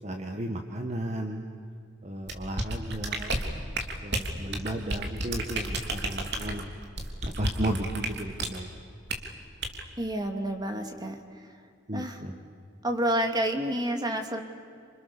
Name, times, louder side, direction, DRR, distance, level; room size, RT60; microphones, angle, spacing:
voice 1, 0.0-1.4 2.0-3.3 4.0-6.7 7.2-8.7 11.9-12.4, right 1 dB, 35° right, 3 dB, 1.6 m, -34 dB
sound 1, 2.3-8.6 9.1-9.3 9.6-9.8, right 2 dB, 60° right, 3.2 m, -31 dB
voice 2, 10.0-11.5 11.9-12.2 12.8-14.4, right 1 dB, 20° right, 4 dB, 2.6 m, -29 dB
29.5 x 27.0 x 7.1 m, 2.4 s
head